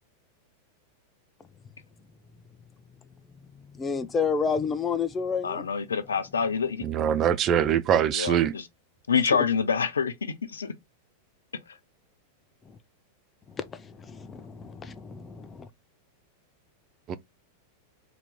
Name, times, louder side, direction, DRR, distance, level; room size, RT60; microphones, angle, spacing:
voice 1, 3.5-5.7 12.7-12.8 13.5-15.7, left 5 dB, 20° left, 0.6 m, -30 dB
voice 2, 5.4-6.8 8.1-8.6 9.1-10.7, left 6 dB, 70° left, 0.6 m, -26 dB
voice 3, 6.8-8.5 17.1-17.2, right 9 dB, 30° right, 0.4 m, -23 dB
3.9 x 2.9 x 3.6 m
figure-of-eight pair, 90°, 0 cm